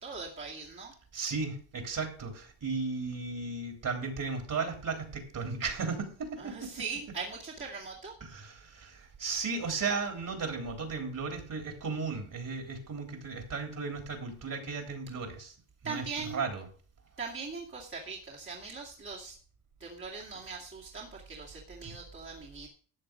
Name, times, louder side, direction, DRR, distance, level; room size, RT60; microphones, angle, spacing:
voice 1, 0.0-0.9 6.4-8.1 15.8-16.4 17.2-19.4 19.8-22.7, right 4 dB, 25° right, -4 dB, 2.4 m, -40 dB
voice 2, 1.1-6.7 8.2-15.5 15.8-16.7 21.8-21.9, right 4 dB, 40° right, 4 dB, 3.5 m, -35 dB
13.5 x 7.7 x 5.2 m, 0.43 s
cardioid pair, 100°, 47 cm